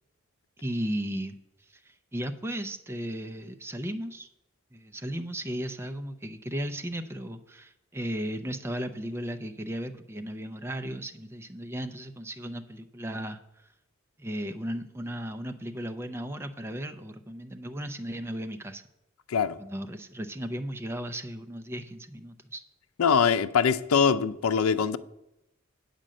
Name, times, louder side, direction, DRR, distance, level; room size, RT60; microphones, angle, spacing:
voice 1, 0.6-1.4 1.7-4.3 4.7-13.4 14.2-18.8 19.6-22.6, equal, 10° right, 0.5 m, -35 dB
voice 2, 23.0-25.0, left 6 dB, 85° left, 0.5 m, -23 dB
8.7 x 5.1 x 7.5 m
head